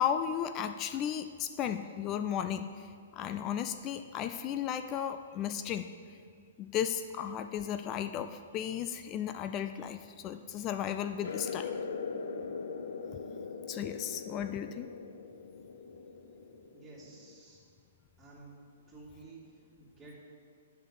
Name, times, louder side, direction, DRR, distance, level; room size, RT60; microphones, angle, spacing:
voice 1, 0.0-2.9 3.1-6.2 6.6-11.7 13.7-14.9, left 9 dB, 30° left, 9 dB, 0.4 m, -35 dB
sound 1, 11.2-17.4, left 5 dB, 60° left, 0.7 m, -41 dB
voice 2, 16.4-17.6 18.2-18.5 18.9-20.2, right 3 dB, 10° right, -9 dB, 2.8 m, -53 dB
7.8 x 5.9 x 7.9 m, 2.2 s
figure-of-eight pair, 115°, 0 cm